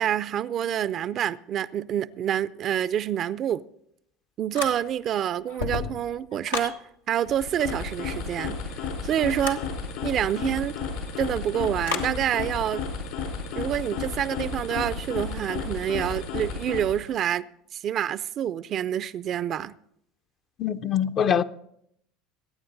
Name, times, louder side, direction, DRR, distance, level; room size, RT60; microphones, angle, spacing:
voice 1, 0.0-3.6 4.4-6.8 7.1-8.6 9.0-9.6 10.0-10.7 11.2-12.9 13.5-17.5 17.7-19.7, right 10 dB, 45° right, 0.5 m, -27 dB
sound 1, 4.5-5.1 5.5-6.8 9.4-9.7 11.9-12.2, left 4 dB, 90° left, 1.4 m, -32 dB
sound 2, 7.2-17.1, left 5 dB, 70° left, 4.8 m, -33 dB
voice 2, 20.6-21.4, left 8 dB, 45° left, 0.6 m, -23 dB
21.5 x 9.3 x 3.9 m
hypercardioid pair, 80°, 0 cm